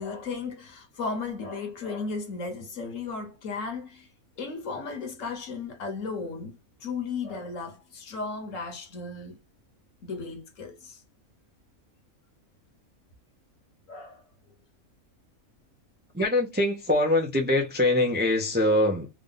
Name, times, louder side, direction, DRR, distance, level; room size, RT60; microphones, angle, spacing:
voice 1, 0.0-4.1 4.4-9.4 10.0-11.0 13.9-14.2, left 4 dB, 65° left, 1.4 m, -35 dB
voice 2, 16.1-19.1, left 1 dB, 10° right, 0.5 m, -23 dB
3.5 x 2.5 x 3.8 m
omnidirectional pair, 1.5 m